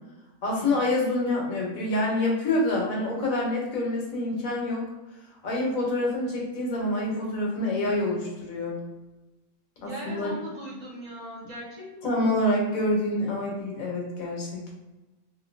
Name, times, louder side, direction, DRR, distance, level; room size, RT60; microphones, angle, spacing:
voice 1, 0.4-4.8 5.4-8.8 9.8-10.3 12.0-14.7, left 1 dB, 65° left, -2 dB, 1.3 m, -27 dB
voice 2, 9.8-12.3, right 1 dB, 70° right, -8 dB, 2.0 m, -39 dB
3.7 x 2.6 x 2.5 m, 1.1 s
omnidirectional pair, 1.6 m